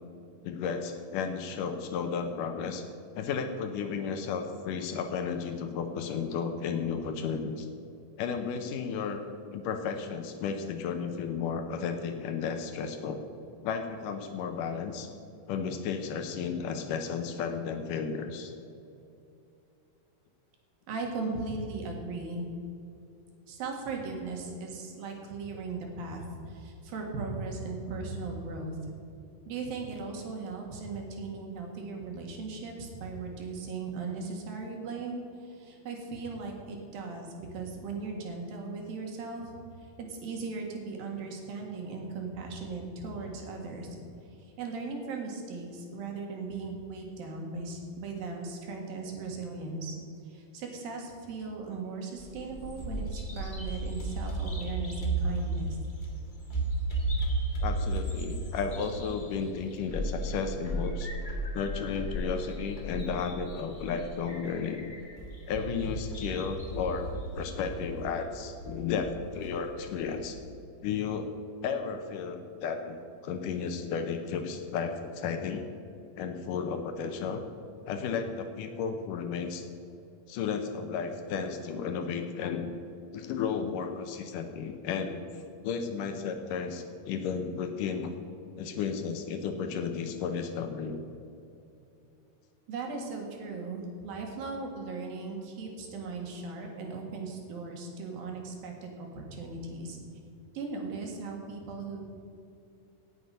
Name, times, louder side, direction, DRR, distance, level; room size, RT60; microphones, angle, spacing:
voice 1, 0.4-2.9 3.2-7.7 8.2-9.2 9.5-13.2 13.6-15.1 15.5-18.5 57.6-61.1 61.5-64.8 65.5-70.4 70.8-71.3 71.6-75.6 76.2-77.4 77.9-79.7 80.3-82.7 83.1-85.2 85.6-88.1 88.6-91.0, left 6 dB, 75° left, 6 dB, 2.3 m, -33 dB
voice 2, 20.9-22.5 23.5-28.8 29.5-39.6 40.0-43.9 44.3-49.9 50.2-55.8 92.7-100.0 100.5-102.0, right 3 dB, 75° right, 1 dB, 3.6 m, -38 dB
Bird vocalization bird call bird song, 52.2-70.3, right 2 dB, 45° left, 0.6 m, -35 dB
18.0 x 8.0 x 5.5 m, 2.7 s
omnidirectional pair, 4.2 m